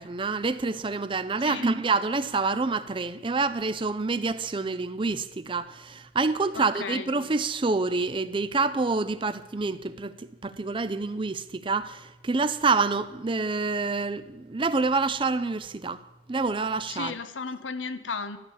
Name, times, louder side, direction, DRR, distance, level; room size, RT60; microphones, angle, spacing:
voice 1, 0.0-10.1 10.4-16.0 16.3-17.1, right 3 dB, 25° right, 0.5 m, -27 dB
voice 2, 6.5-7.1 16.9-18.4, left 5 dB, 85° left, 0.9 m, -34 dB
12.5 x 7.1 x 8.9 m
head